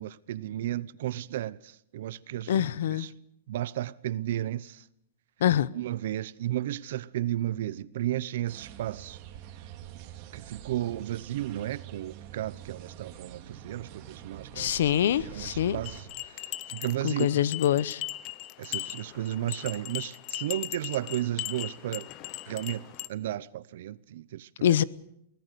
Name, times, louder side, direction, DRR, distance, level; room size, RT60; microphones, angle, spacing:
voice 1, 0.0-3.1 3.5-4.8 5.7-9.2 10.3-14.9 15.2-17.4 18.6-22.1 22.5-24.8, right 13 dB, 50° right, 0.7 m, -34 dB
voice 2, 2.5-3.1 5.4-5.7 14.5-15.8 17.0-18.0 24.6-24.8, left 10 dB, 60° left, 0.8 m, -25 dB
sound 1, 8.5-16.0, right 11 dB, 30° right, 2.3 m, -45 dB
sound 2, 15.8-23.1, left 16 dB, 25° left, 0.7 m, -39 dB
24.0 x 18.0 x 6.8 m
supercardioid pair, 175°, 0 cm